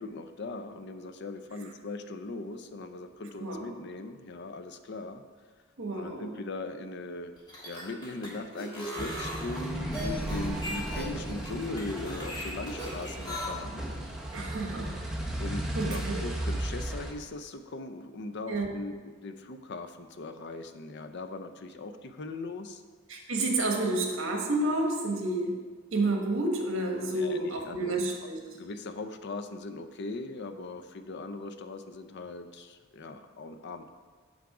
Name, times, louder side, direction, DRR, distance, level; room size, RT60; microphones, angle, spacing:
voice 1, 0.0-5.2 5.9-7.3 7.6-13.8 15.4-22.8 27.1-28.1 28.5-33.9, left 2 dB, 55° left, 9 dB, 0.5 m, -39 dB
voice 2, 5.8-6.3 14.3-14.9 15.7-16.2 18.5-18.7 23.1-25.6 25.9-28.4, right 2 dB, 65° right, 2 dB, 1.2 m, -30 dB
sound 1, 7.4-13.5, equal, 20° left, 1.5 m, -38 dB
sound 2, 9.0-17.1, right 1 dB, ahead, 0.7 m, -35 dB
7.2 x 5.9 x 4.9 m, 1.5 s
head